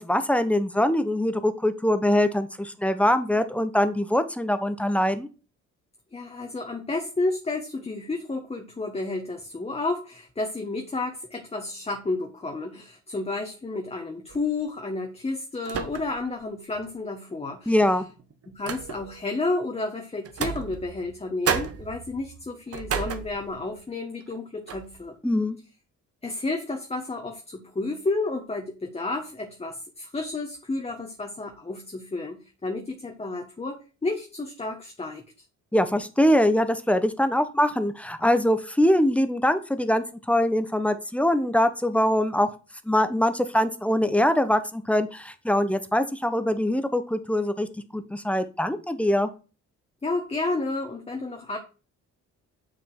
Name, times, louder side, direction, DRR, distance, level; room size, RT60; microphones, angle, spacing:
voice 1, 0.0-5.3 17.7-18.1 25.2-25.6 35.7-42.5 42.9-47.7 47.9-49.3, left 1 dB, 5° left, 10 dB, 0.9 m, -23 dB
voice 2, 6.1-17.8 18.5-25.2 26.2-35.2 50.0-51.6, left 3 dB, 20° left, 3 dB, 1.3 m, -31 dB
sound 1, 14.3-14.6 15.6-16.4 16.7-16.8 17.8-19.3 20.3-21.2 21.5-23.8 24.2-24.4 24.7-25.0, right 7 dB, 50° right, 1.2 m, -33 dB
7.0 x 6.2 x 4.5 m, 0.34 s
cardioid pair, 90°, 30 cm